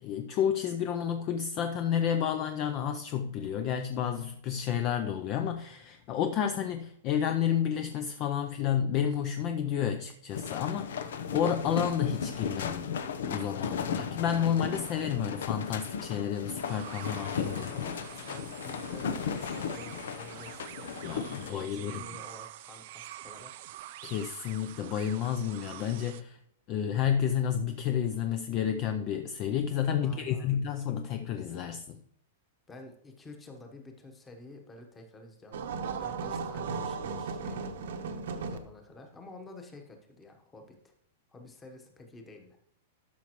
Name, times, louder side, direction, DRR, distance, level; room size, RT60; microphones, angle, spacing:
voice 1, 0.0-12.9 13.2-17.7 21.0-22.0 24.0-26.4 26.7-32.0, left 8 dB, 30° left, 0.4 m, -30 dB
sound 1, 10.3-21.5, left 6 dB, 80° left, 0.8 m, -35 dB
sound 2, 16.7-26.2, right 14 dB, 50° right, 0.4 m, -47 dB
voice 2, 17.4-23.7 29.9-30.5 32.7-35.6 36.0-37.6 38.4-40.9 41.3-42.6, left 2 dB, 10° left, 1.1 m, -49 dB
sound 3, 35.5-38.6, right 5 dB, 75° right, 1.0 m, -35 dB
12.5 x 5.8 x 3.0 m
supercardioid pair, 165°, 0 cm